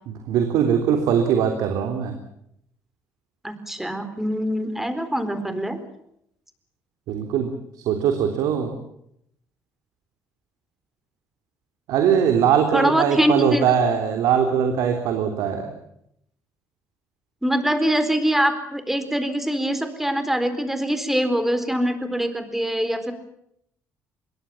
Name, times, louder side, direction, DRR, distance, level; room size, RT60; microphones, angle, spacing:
voice 1, 0.1-2.1 7.1-7.5 7.9-8.8 11.9-15.7, right 8 dB, 85° right, 5 dB, 3.4 m, -21 dB
voice 2, 3.4-5.8 12.7-13.7 17.4-23.1, equal, 5° right, 10 dB, 4.2 m, -23 dB
25.0 x 22.0 x 7.3 m, 0.75 s
cardioid pair, 110°, 6 cm